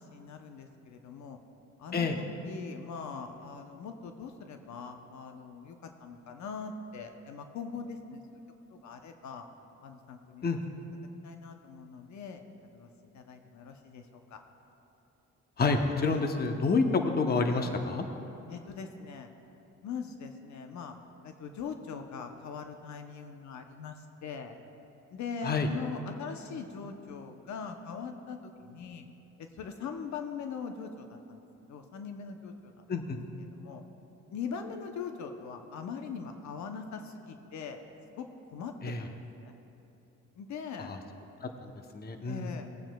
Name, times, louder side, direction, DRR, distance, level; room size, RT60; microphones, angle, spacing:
voice 1, 0.0-1.4 1.8-8.2 8.7-9.5 9.8-10.4 11.2-12.4 12.7-14.4 18.5-19.3 19.8-21.0 21.2-24.5 25.1-29.0 29.4-32.8 33.4-33.8 34.3-37.8 38.2-39.5 40.4-40.9 42.3-42.7, left 5 dB, 70° left, 6 dB, 0.8 m, -41 dB
voice 2, 15.6-18.0 25.4-25.7 32.9-33.2 38.8-39.1 40.8-41.0 41.4-42.5, left 4 dB, 30° left, 5 dB, 0.8 m, -28 dB
17.5 x 8.9 x 2.3 m, 2.9 s
cardioid pair, 90°, 30 cm